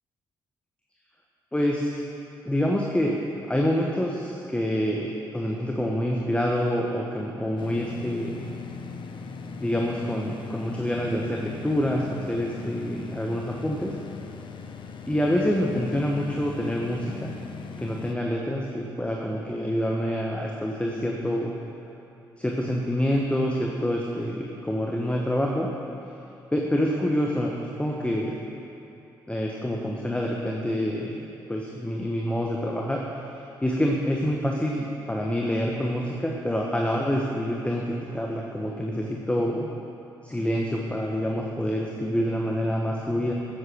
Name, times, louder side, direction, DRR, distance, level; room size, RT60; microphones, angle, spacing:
voice 1, 1.5-2.0 2.4-3.2 3.5-8.3 9.6-13.9 15.1-17.3 17.8-21.5 22.4-25.7 26.5-28.4 29.3-33.0 33.6-39.7 40.2-43.3, equal, 10° left, -1 dB, 1.2 m, -27 dB
sound 1, 7.6-18.2, left 5 dB, 45° left, 0.8 m, -39 dB
10.0 x 8.1 x 6.1 m, 2.8 s
figure-of-eight pair, 40°, 12 cm